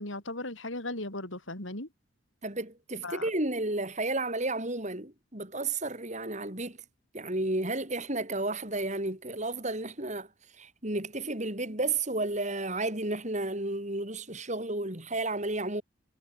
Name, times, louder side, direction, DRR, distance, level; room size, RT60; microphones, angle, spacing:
voice 1, 0.0-1.9 3.0-3.2, left 2 dB, 75° left, 6.4 m, -37 dB
voice 2, 2.4-6.8 7.1-10.3 10.6-15.8, right 2 dB, 35° right, 4.5 m, -32 dB
head